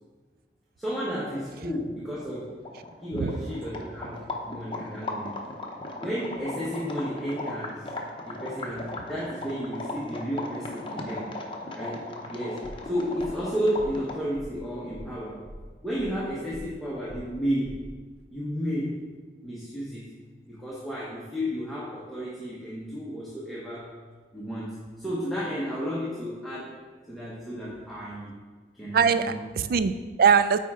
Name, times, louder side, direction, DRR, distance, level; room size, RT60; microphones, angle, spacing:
voice 1, 0.8-2.6 3.0-5.4 6.0-7.9 8.2-11.3 11.7-15.4 15.8-17.8 18.3-19.0 19.4-20.1 20.4-23.9 24.3-26.7 27.1-28.3 28.7-29.4, equal, ahead, -7 dB, 1.0 m, -32 dB
sound 1, 2.6-14.3, left 2 dB, 30° left, 0.8 m, -37 dB
voice 2, 3.1-3.4 28.9-30.6, right 6 dB, 55° right, 12 dB, 0.4 m, -22 dB
sound 2, 12.6-12.9 13.2-13.5 13.8-14.1 14.3-14.6 14.9-15.2 15.4-16.3 16.5-16.8 17.1-17.4 17.6-17.9, equal, 80° right, 0.8 m, -44 dB
9.4 x 4.3 x 3.6 m, 1.4 s
head